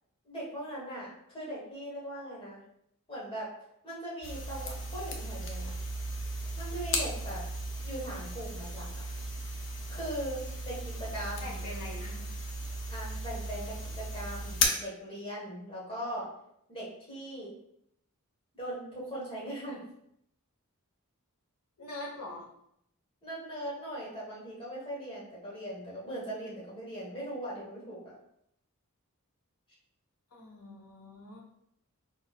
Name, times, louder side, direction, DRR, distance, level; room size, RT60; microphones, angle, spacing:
voice 1, 0.2-2.6 3.1-3.5 3.8-5.7 6.5-7.4 7.8-8.9 9.9-11.5 12.9-16.3 16.7-17.5 18.5-19.8 23.2-28.1, right 1 dB, 25° left, -6 dB, 1.5 m, -40 dB
sound 1, 4.2-14.7, left 1 dB, 60° left, 0.6 m, -36 dB
voice 2, 11.4-12.2 21.8-22.5 30.3-31.4, left 1 dB, 85° left, -3 dB, 1.4 m, -43 dB
4.2 x 3.6 x 2.4 m, 0.76 s
head